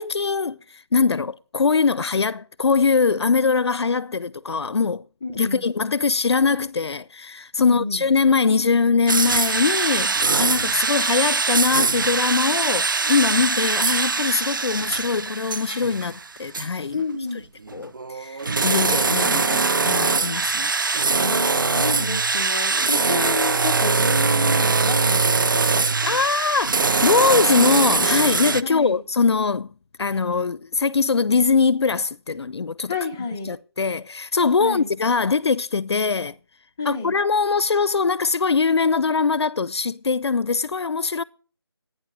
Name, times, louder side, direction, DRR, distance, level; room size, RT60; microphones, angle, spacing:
voice 1, 0.0-5.1 5.3-17.0 17.3-17.4 17.7-21.0 26.1-32.9 33.4-36.4 36.8-41.2, left 4 dB, 80° left, 0.5 m, -22 dB
voice 2, 5.2-5.6 7.6-8.0 16.9-17.4 21.2-26.2 28.6-29.0 32.9-33.5 34.6-34.9 36.8-37.1, left 4 dB, 5° left, 0.6 m, -30 dB
sound 1, 9.1-16.3 16.5-16.7 17.7-28.6, right 4 dB, 50° right, 0.5 m, -22 dB
11.5 x 9.2 x 6.1 m
figure-of-eight pair, 175°, 14 cm